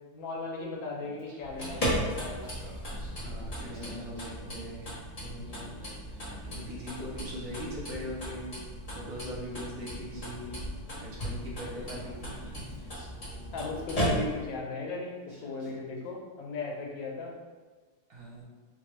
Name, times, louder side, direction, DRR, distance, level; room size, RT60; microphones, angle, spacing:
voice 1, 0.1-2.5 13.5-17.3, left 3 dB, 90° left, -1 dB, 1.4 m, -37 dB
Singing, 1.0-5.0 5.3-8.5 9.5-9.6 10.1-14.3 14.9-15.0 15.2-16.1, right 1 dB, 35° right, 0.9 m, -53 dB
sound 1, 1.4-14.6, equal, 35° left, 0.5 m, -36 dB
voice 2, 3.2-4.9 5.2-5.7 6.3-8.6 8.9-10.6 11.0-12.9 18.1-18.4, equal, 65° right, -5 dB, 1.1 m, -41 dB
4.1 x 2.2 x 3.0 m, 1.3 s
omnidirectional pair, 2.0 m